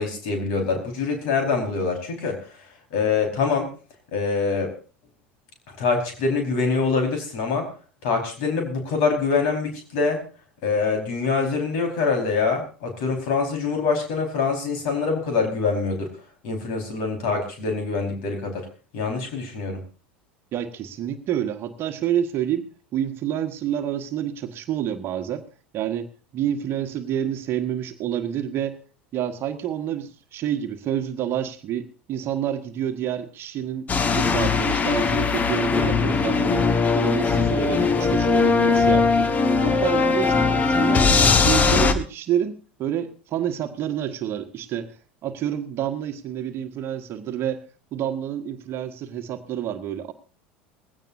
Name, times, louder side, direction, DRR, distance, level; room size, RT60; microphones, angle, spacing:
voice 1, 0.0-2.4 2.9-3.7 4.1-4.7 5.8-7.7 8.0-10.2 10.6-16.1 16.4-18.7 18.9-19.8, left 4 dB, 55° left, 3 dB, 4.6 m, -24 dB
voice 2, 20.5-25.4 25.7-28.8 29.1-33.9 34.2-36.6 36.9-39.3 39.6-41.1 41.4-45.0 45.2-47.6 47.9-50.1, right 10 dB, 40° right, 8 dB, 1.4 m, -28 dB
sound 1, 33.9-41.9, left 4 dB, 25° left, 1.3 m, -20 dB
19.5 x 16.5 x 2.7 m, 0.37 s
figure-of-eight pair, 75°, 6 cm